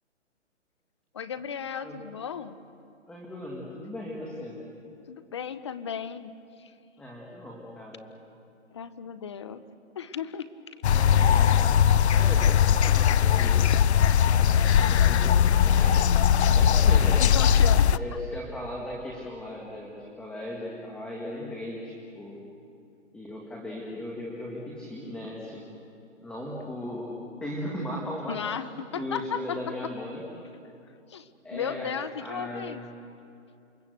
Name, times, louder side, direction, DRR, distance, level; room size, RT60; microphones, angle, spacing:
voice 1, 1.1-2.5 5.1-6.3 6.6-6.7 8.7-9.6 10.0-10.5 16.8-18.0 28.3-29.9 31.1-32.8, left 7 dB, 25° left, 13 dB, 0.6 m, -35 dB
voice 2, 3.1-4.6 7.0-8.1 10.9-11.8 12.1-13.7 14.4-16.1 16.5-17.2 18.0-22.4 23.1-25.7 26.2-27.1 27.4-30.2 31.4-31.9 32.2-32.8, left 1 dB, 5° left, -3 dB, 1.7 m, -37 dB
sound 1, 10.8-18.0, left 8 dB, 60° left, 0.7 m, -20 dB
28.0 x 23.0 x 7.9 m, 2.6 s
hypercardioid pair, 165°, 37 cm